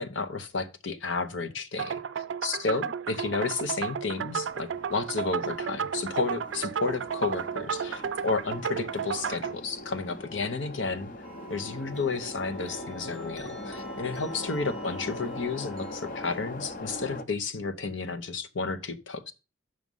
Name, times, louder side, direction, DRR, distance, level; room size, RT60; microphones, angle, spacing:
voice 1, 0.0-11.1 11.5-19.3, left 4 dB, 85° left, 0.8 m, -32 dB
sound 1, 1.8-9.5, right 7 dB, 75° right, 0.4 m, -33 dB
sound 2, 4.3-17.2, left 1 dB, 45° left, 0.8 m, -41 dB
sound 3, 11.2-16.5, right 3 dB, 5° left, 0.8 m, -49 dB
6.4 x 6.2 x 5.4 m
head